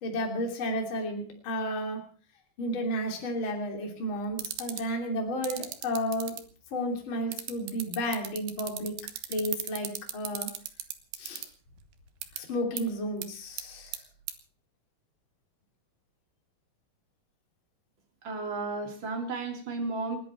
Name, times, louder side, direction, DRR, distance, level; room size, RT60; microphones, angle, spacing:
voice 1, 0.0-2.0 2.6-6.4 6.7-8.9 9.3-10.5 11.2-11.4 12.4-14.0, equal, 35° left, 2 dB, 3.5 m, -32 dB
sound 1, 4.3-4.8 5.4-6.4 7.3-11.5 12.2-12.4 12.8-12.9 13.2-13.3 13.6-14.0 14.3-14.4, right 11 dB, 70° right, 3.0 m, -35 dB
voice 2, 18.2-20.2, right 3 dB, 30° right, 3 dB, 3.4 m, -33 dB
29.5 x 11.0 x 4.5 m, 0.42 s
omnidirectional pair, 4.4 m